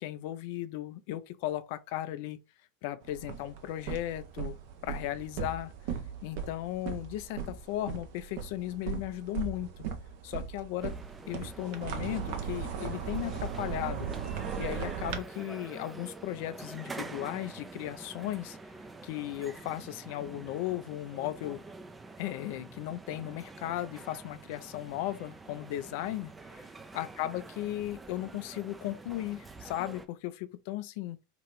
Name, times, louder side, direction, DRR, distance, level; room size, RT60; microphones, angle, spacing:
voice 1, 0.0-2.4 2.8-4.6 4.8-5.7 6.2-9.7 10.2-11.0 11.3-14.1 14.6-18.6 19.0-21.6 22.2-26.3 26.9-31.2, left 14 dB, 55° left, 0.4 m, -36 dB
sound 1, 3.0-15.2, right 7 dB, 55° right, 0.6 m, -38 dB
sound 2, 10.8-30.1, right 3 dB, 15° right, 0.4 m, -46 dB
2.9 x 2.5 x 3.1 m
hypercardioid pair, 90°, 0 cm